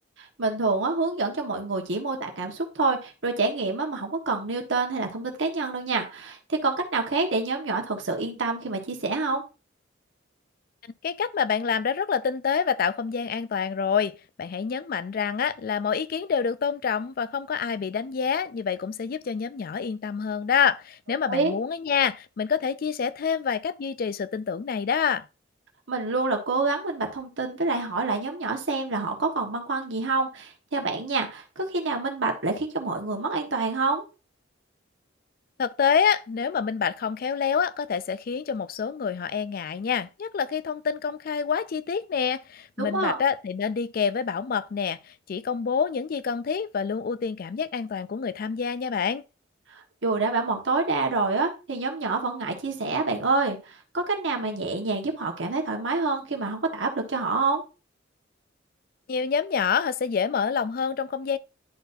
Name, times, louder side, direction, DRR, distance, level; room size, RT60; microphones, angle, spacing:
voice 1, 0.4-9.4 21.3-21.5 25.9-34.0 42.8-43.2 49.7-57.6, right 3 dB, 75° right, 1.4 m, -27 dB
voice 2, 11.0-25.3 35.6-49.2 59.1-61.4, left 6 dB, 50° left, 0.4 m, -27 dB
11.0 x 4.1 x 2.6 m
head